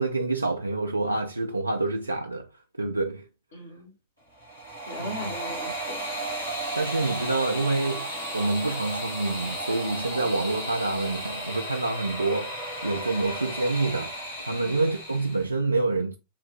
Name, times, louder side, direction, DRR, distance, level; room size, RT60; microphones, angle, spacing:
voice 1, 0.0-2.5 2.8-3.2 5.0-5.3 6.7-8.1 8.3-14.1 14.4-16.2, right 3 dB, 85° right, 0.3 m, -27 dB
voice 2, 3.5-3.9 4.9-6.1 10.1-10.4 14.6-14.9, left 1 dB, 60° left, 1.8 m, -39 dB
sound 1, 4.3-15.5, right 1 dB, 85° left, 2.0 m, -34 dB
4.6 x 2.6 x 3.5 m
figure-of-eight pair, 90°, 0 cm